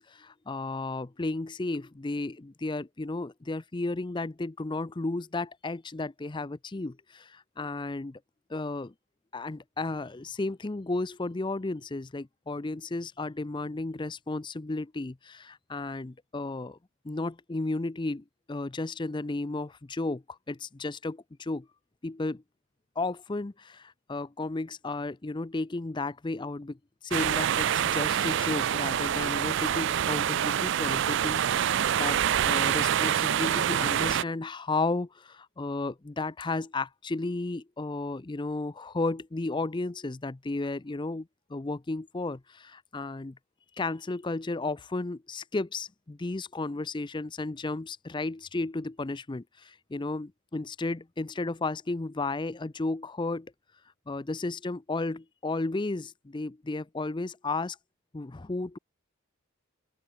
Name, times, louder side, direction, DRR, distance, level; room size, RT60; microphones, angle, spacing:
voice 1, 0.0-8.2 8.5-8.9 9.3-16.8 17.0-21.7 22.0-22.4 23.0-26.8 27.0-43.4 43.8-53.5 54.1-57.8 58.1-58.8, left 2 dB, 20° left, 0.5 m, -33 dB
sound 1, 27.1-34.2, right 9 dB, 55° right, 0.4 m, -26 dB
open air
head